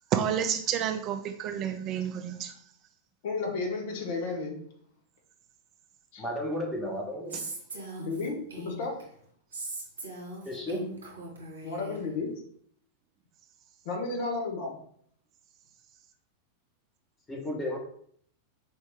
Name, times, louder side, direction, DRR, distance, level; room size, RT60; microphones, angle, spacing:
voice 1, 0.1-2.5, right 9 dB, 35° right, 6 dB, 0.3 m, -29 dB
voice 2, 3.2-4.6 6.1-6.2 8.0-9.0 11.6-12.3 13.8-14.8, left 3 dB, 50° left, 1 dB, 1.0 m, -32 dB
voice 3, 6.2-7.4 10.4-10.8 17.3-17.8, left 1 dB, 15° left, 0 dB, 1.1 m, -33 dB
Female speech woman speaking, 7.3-9.0 9.5-12.0, right 2 dB, 70° right, 1.1 m, -40 dB
4.6 x 2.6 x 3.5 m, 0.63 s
figure-of-eight pair, 90°, 0 cm